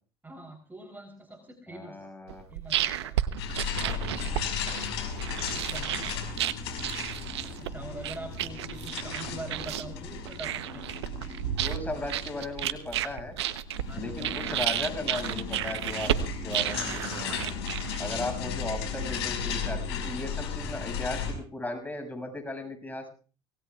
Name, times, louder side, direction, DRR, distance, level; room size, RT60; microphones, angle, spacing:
voice 1, 0.2-2.1 2.5-3.1 3.7-4.1 5.5-6.3 7.6-10.9 13.9-14.4 18.1-18.3, right 2 dB, 15° right, 4 dB, 3.5 m, -44 dB
voice 2, 1.7-2.5 11.6-13.3 13.9-17.5 18.0-23.1, left 2 dB, 10° left, 5 dB, 6.7 m, -36 dB
sound 1, 2.3-18.4, right 11 dB, 85° right, 0.9 m, -32 dB
sound 2, 3.4-21.3, left 6 dB, 80° left, 5.1 m, -35 dB
25.5 x 18.5 x 2.4 m, 0.37 s
hypercardioid pair, 70°, 14 cm